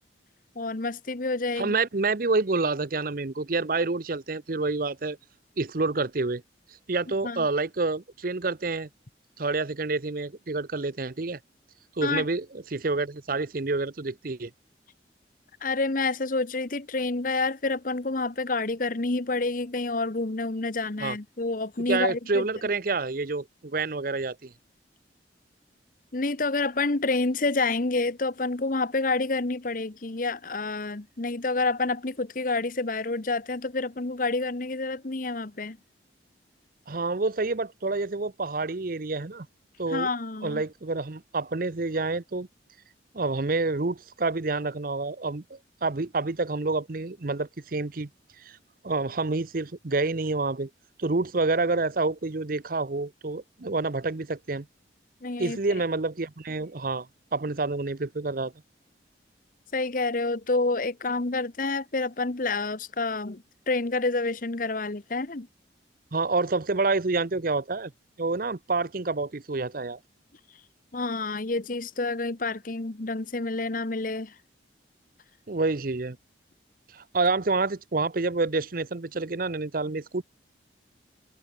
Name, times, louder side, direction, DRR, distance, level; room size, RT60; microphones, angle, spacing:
voice 1, 0.5-1.8 7.2-7.5 12.0-12.2 15.6-22.4 26.1-35.8 39.9-40.6 55.2-55.6 59.7-65.5 70.9-74.3, left 3 dB, 50° left, 1.1 m, -28 dB
voice 2, 1.6-5.2 5.6-6.4 6.9-8.9 9.4-11.4 12.0-14.5 21.0-21.2 21.9-24.5 36.9-39.5 39.8-40.1 40.4-42.5 43.1-48.1 48.4-48.6 48.8-50.7 51.0-54.7 55.4-57.1 57.3-58.5 66.1-67.9 68.2-70.0 75.5-76.2 76.9-80.2, right 3 dB, 50° right, 0.8 m, -28 dB
head